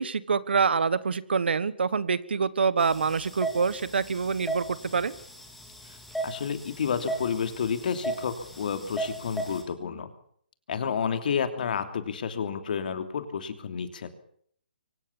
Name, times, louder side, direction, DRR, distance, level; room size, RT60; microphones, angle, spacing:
voice 1, 0.0-5.1, right 5 dB, 75° right, 17 dB, 1.5 m, -26 dB
sound 1, 2.8-9.6, right 2 dB, ahead, 3.3 m, -37 dB
voice 2, 6.2-10.1 10.7-14.1, left 7 dB, 55° left, 8 dB, 3.1 m, -30 dB
24.5 x 17.5 x 7.3 m, 0.63 s
hypercardioid pair, 155°, 6 cm